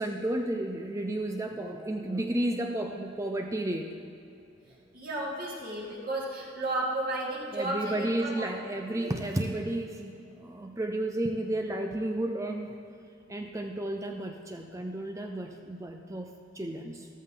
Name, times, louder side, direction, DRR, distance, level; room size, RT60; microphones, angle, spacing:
voice 1, 0.0-4.0 7.5-12.8 13.3-17.1, right 1 dB, 15° right, 3 dB, 0.6 m, -32 dB
voice 2, 4.9-8.5 9.0-9.1, right 1 dB, 50° right, -4 dB, 2.4 m, -33 dB
14.0 x 13.5 x 3.8 m, 2.7 s
head